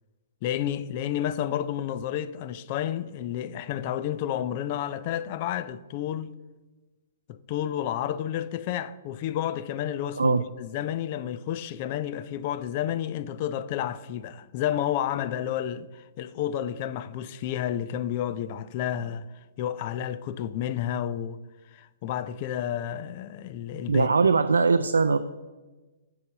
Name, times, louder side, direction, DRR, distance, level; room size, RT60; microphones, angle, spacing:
voice 1, 0.4-6.3 7.3-19.3 19.6-21.4 21.7-24.1, left 10 dB, 40° left, 0.4 m, -31 dB
voice 2, 23.9-25.2, right 4 dB, 80° right, 0.3 m, -21 dB
6.8 x 4.8 x 6.7 m
figure-of-eight pair, 120°, 0 cm